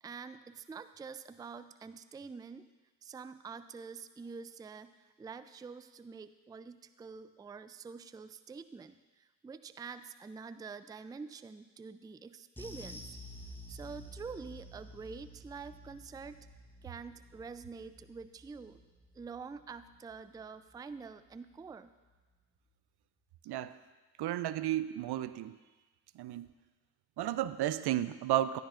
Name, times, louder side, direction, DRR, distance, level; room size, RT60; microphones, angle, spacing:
voice 1, 0.0-2.6 3.0-13.2 13.7-16.4 16.8-18.8 19.1-21.9, right 5 dB, 10° right, 12 dB, 0.3 m, -47 dB
sound 1, 12.6-21.2 21.5-21.7 22.1-22.2, left 1 dB, 5° left, 1.0 m, -51 dB
voice 2, 24.2-25.6 26.2-26.5 27.2-28.6, right 13 dB, 70° right, 15 dB, 0.5 m, -33 dB
12.5 x 10.5 x 2.5 m, 1.2 s
supercardioid pair, 50°, 42 cm